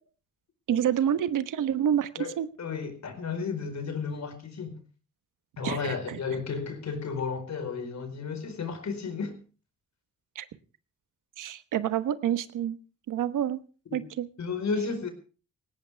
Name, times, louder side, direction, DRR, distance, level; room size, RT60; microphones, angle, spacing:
voice 1, 0.7-2.1 2.4-2.5 5.6-6.2 10.3-10.5 11.4-12.8 13.1-13.6 13.9-14.3, right 10 dB, 85° right, 1.2 m, -28 dB
voice 2, 2.2-4.8 5.6-9.3 13.9-14.0 14.4-15.1, left 5 dB, 60° left, 4.6 m, -33 dB
18.5 x 17.0 x 3.5 m
cardioid pair, 75°, 31 cm